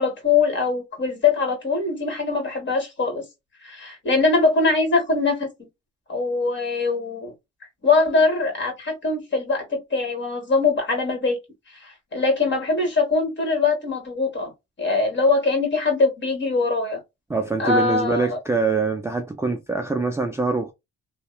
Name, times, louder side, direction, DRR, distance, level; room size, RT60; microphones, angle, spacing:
voice 1, 0.0-3.2 3.6-5.5 6.1-7.3 7.8-11.4 11.7-14.5 14.8-17.0 17.6-18.4, left 3 dB, 40° left, 1.6 m, -22 dB
voice 2, 17.3-20.7, right 3 dB, 10° right, 0.4 m, -24 dB
2.8 x 2.2 x 2.2 m
cardioid pair, 90°, 30 cm